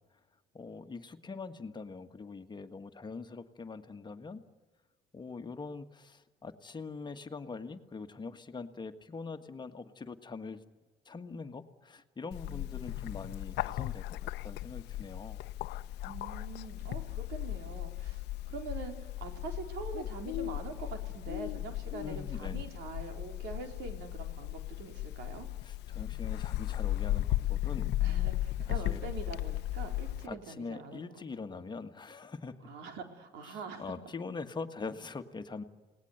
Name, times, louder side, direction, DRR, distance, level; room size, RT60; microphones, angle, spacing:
voice 1, 0.5-4.4 5.1-10.6 11.0-15.4 22.0-22.7 25.6-27.9 28.7-29.0 30.2-32.7 33.5-35.6, left 4 dB, 25° left, 8 dB, 1.7 m, -43 dB
Bird, 12.3-30.3, left 14 dB, 85° left, 0.8 m, -36 dB
voice 2, 16.0-18.2 18.5-25.5 28.0-31.0 32.6-33.9, right 4 dB, 85° right, 5 dB, 4.0 m, -44 dB
28.5 x 19.5 x 8.1 m, 1.2 s
cardioid pair, 110°, 17 cm